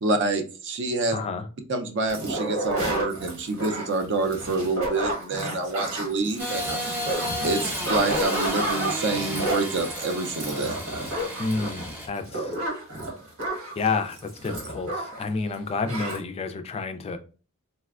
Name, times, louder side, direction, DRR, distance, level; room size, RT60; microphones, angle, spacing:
voice 1, 0.0-1.2 1.7-6.7 7.4-10.8, right 3 dB, 55° right, 0.6 m, -27 dB
voice 2, 1.1-1.5 11.4-12.6 13.8-17.2, left 4 dB, 30° left, 0.3 m, -29 dB
sound 1, 2.1-15.3 15.5-15.6 15.8-16.2, right 1 dB, 85° right, 1.2 m, -31 dB
Engine starting / Sawing, 6.4-12.1, equal, 10° right, 0.6 m, -33 dB
4.1 x 2.1 x 2.3 m
head